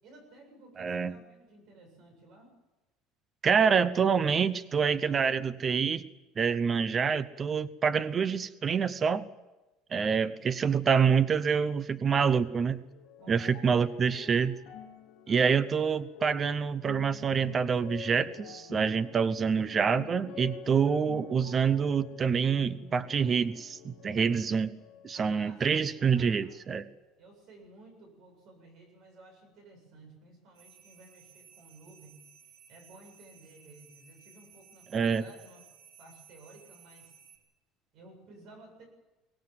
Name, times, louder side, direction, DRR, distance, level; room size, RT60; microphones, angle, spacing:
voice 1, 0.0-2.5 10.1-10.4 13.2-14.2 15.2-15.7 25.1-26.6 27.2-32.2 32.7-35.6 36.0-37.1 37.9-38.8, right 2 dB, 45° right, 4 dB, 7.8 m, -55 dB
voice 2, 0.8-1.1 3.4-6.0 6.4-9.3 9.9-12.8 13.3-14.6 15.3-24.7 25.0-26.8 34.9-35.2, right 6 dB, 20° right, 15 dB, 0.7 m, -26 dB
sound 1, 12.2-25.7 26.0-26.9 27.6-27.7, left 9 dB, 55° left, 3.4 m, -49 dB
sound 2, 30.5-37.4, right 8 dB, 85° right, 4.4 m, -57 dB
23.5 x 18.5 x 7.8 m, 1.1 s
cardioid pair, 175°, 0 cm